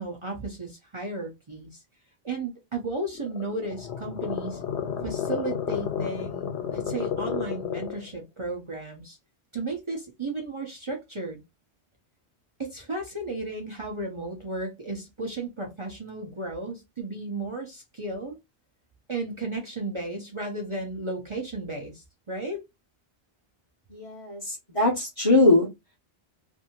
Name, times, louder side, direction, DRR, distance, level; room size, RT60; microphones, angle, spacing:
voice 1, 0.0-1.8 2.2-4.6 5.0-9.2 9.5-11.4 12.6-18.4 19.1-22.6, right 2 dB, 35° right, 0.6 m, -34 dB
sound 1, 3.1-8.1, left 8 dB, 85° left, 0.9 m, -32 dB
voice 2, 23.9-25.7, left 2 dB, 35° left, 0.7 m, -21 dB
2.6 x 2.6 x 2.8 m
omnidirectional pair, 1.1 m